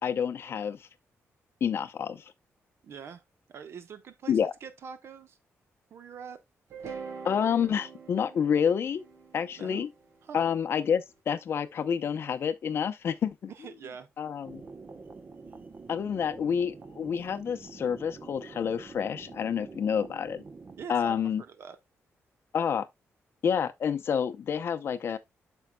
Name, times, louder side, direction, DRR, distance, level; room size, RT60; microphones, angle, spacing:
voice 1, 0.0-0.9 1.6-2.3 4.3-4.5 7.2-9.0 9.3-9.9 10.3-13.5 14.2-14.6 15.9-20.4 20.9-21.4 22.5-22.9 23.4-25.2, left 7 dB, 55° left, 0.7 m, -28 dB
voice 2, 2.8-3.2 3.5-5.4 5.9-6.4 9.6-9.9 10.2-10.4 13.5-14.1 20.8-21.8, right 6 dB, 60° right, 1.0 m, -44 dB
sound 1, 6.7-10.9, right 5 dB, 75° right, 2.5 m, -44 dB
sound 2, 14.4-20.9, right 4 dB, 35° right, 0.8 m, -47 dB
9.1 x 6.3 x 2.2 m
wide cardioid pair, 140°, 5 cm